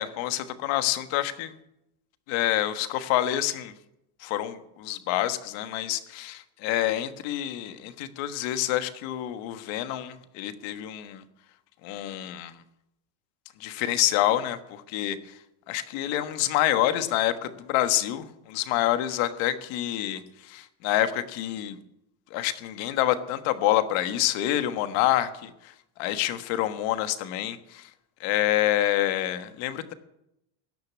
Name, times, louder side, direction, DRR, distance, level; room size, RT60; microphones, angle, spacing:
voice 1, 0.0-1.5 2.3-3.7 4.2-11.2 11.8-12.6 13.6-15.2 15.7-21.8 22.3-27.9 28.2-29.9, left 13 dB, 70° left, 10 dB, 1.5 m, -27 dB
17.0 x 6.7 x 9.6 m, 0.84 s
cardioid pair, 135°, 48 cm